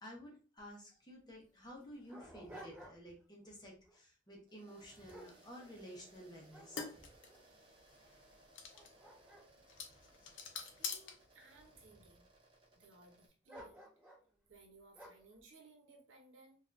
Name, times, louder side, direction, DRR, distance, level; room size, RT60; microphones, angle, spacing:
voice 1, 0.0-6.8, equal, 20° left, -2 dB, 0.8 m, -53 dB
Dog, 0.6-0.7 0.9-1.0 1.6-3.2 3.7-4.0 4.6-6.1 6.5-7.4 8.0-8.1 8.6-10.9 11.6-12.2 13.5-14.3 14.9-15.3, right 1 dB, 10° right, 1.2 m, -56 dB
sound 1, 4.5-13.3, right 2 dB, 25° right, 0.5 m, -65 dB
sound 2, 4.9-11.8, left 6 dB, 80° left, 0.5 m, -49 dB
voice 2, 10.5-12.3 12.8-13.9 14.5-16.6, right 3 dB, 85° right, 1 dB, 0.8 m, -61 dB
3.4 x 2.4 x 2.5 m, 0.38 s
head